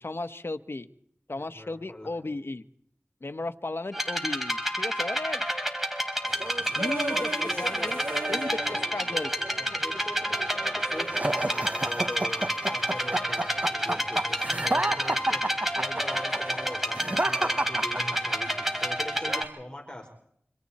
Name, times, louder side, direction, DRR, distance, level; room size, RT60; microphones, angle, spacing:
voice 1, 0.0-0.9 1.3-2.6 3.2-5.4 6.8-8.0 8.3-9.3, left 2 dB, 65° left, 10 dB, 1.2 m, -35 dB
voice 2, 1.3-2.2 6.7-8.9 9.6-20.1, left 1 dB, 20° left, 1 dB, 4.7 m, -42 dB
sound 1, 3.9-19.4, equal, 5° right, 4.2 m, -29 dB
sound 2, 6.3-19.5, right 2 dB, 70° right, 2.7 m, -41 dB
sound 3, 11.1-18.5, right 1 dB, 35° right, 1.0 m, -30 dB
29.5 x 26.5 x 4.3 m, 0.68 s
wide cardioid pair, 50°, 4 cm